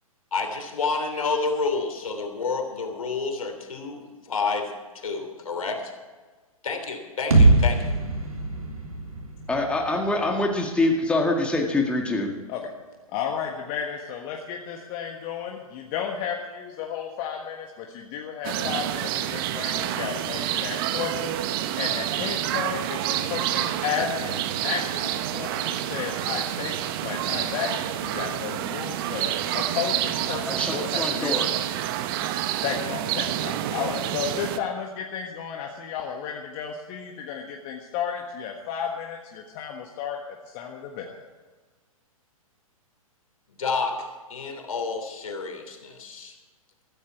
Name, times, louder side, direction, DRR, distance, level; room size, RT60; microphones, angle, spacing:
voice 1, 0.3-5.9 6.6-7.9 43.6-46.3, left 4 dB, 70° left, 5 dB, 3.2 m, -29 dB
sound 1, 7.3-11.2, right 2 dB, 80° right, 3.2 m, -23 dB
voice 2, 9.5-12.3 30.5-31.5, left 2 dB, 5° left, 1 dB, 1.8 m, -25 dB
voice 3, 13.1-26.7 27.0-27.7 28.0-31.5 32.6-40.2 40.5-41.2, left 7 dB, 35° left, 1 dB, 1.5 m, -33 dB
sound 2, 18.4-34.6, right 12 dB, 40° right, 0.9 m, -28 dB
15.5 x 14.0 x 4.6 m, 1.3 s
figure-of-eight pair, 115°, 18 cm